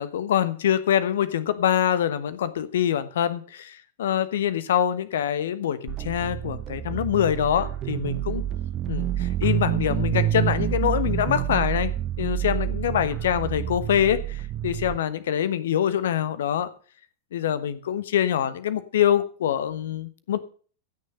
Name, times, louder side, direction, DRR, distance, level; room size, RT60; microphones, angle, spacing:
voice 1, 0.0-8.4 8.9-11.9 12.2-16.7 17.3-20.4, left 10 dB, 60° left, 15 dB, 1.2 m, -25 dB
sound 1, 5.9-15.0, right 11 dB, 30° right, 0.9 m, -28 dB
16.0 x 6.6 x 6.5 m, 0.41 s
figure-of-eight pair, 90°, 0 cm